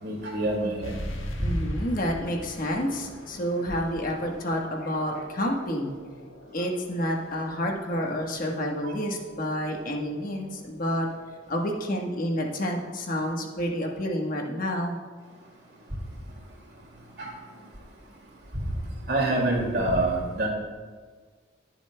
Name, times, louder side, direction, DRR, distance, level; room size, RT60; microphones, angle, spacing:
voice 1, 0.0-0.9 8.8-8.9 17.2-17.3 19.1-20.5, right 2 dB, 60° right, -1 dB, 2.3 m, -26 dB
sound 1, 0.8-15.9, left 1 dB, 85° left, 1.4 m, -44 dB
voice 2, 1.4-6.0 6.5-11.1 11.5-15.0, equal, 45° left, 1 dB, 1.3 m, -29 dB
21.0 x 7.1 x 2.2 m, 1.5 s
head